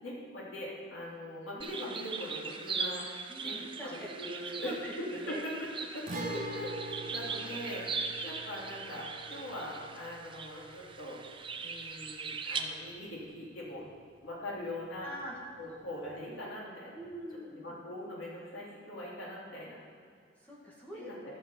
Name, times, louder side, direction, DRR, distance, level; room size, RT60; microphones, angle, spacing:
voice 1, 0.0-3.1 3.4-3.5 3.8-4.8 5.3-5.7 5.9-7.8 8.2-11.2 11.6-13.9 14.2-15.1 15.6-17.0 17.4-19.8 20.9-21.1, left 1 dB, 90° left, -6 dB, 3.4 m, -41 dB
sound 1, 1.6-12.6, right 5 dB, 25° right, 0.7 m, -40 dB
voice 2, 3.3-5.4 15.0-15.4 15.6-15.8 16.9-17.8 20.4-21.1, equal, 10° left, -5 dB, 2.1 m, -44 dB
Guitar, 6.1-13.7 14.0-14.1 16.1-16.2, right 2 dB, 45° right, 1.2 m, -45 dB
14.0 x 5.9 x 7.2 m, 2.1 s
head